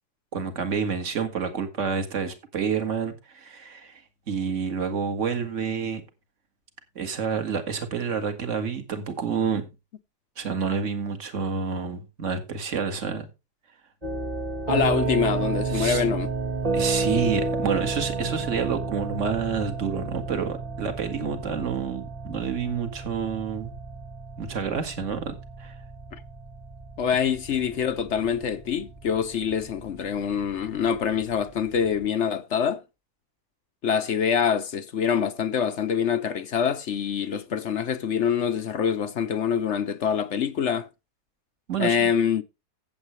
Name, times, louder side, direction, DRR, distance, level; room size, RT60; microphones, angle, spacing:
voice 1, 0.3-4.0 4.3-6.0 7.0-9.6 10.4-13.3 15.7-16.0 16.7-23.7 24.4-25.7 41.7-42.1, right 6 dB, 50° right, 2.1 m, -28 dB
sound 1, 14.0-32.0, right 3 dB, 25° right, 1.6 m, -31 dB
voice 2, 14.7-16.3 26.1-26.2 27.0-32.8 33.8-40.9 41.8-42.4, left 7 dB, 55° left, 0.9 m, -25 dB
15.5 x 8.1 x 3.2 m
omnidirectional pair, 1.7 m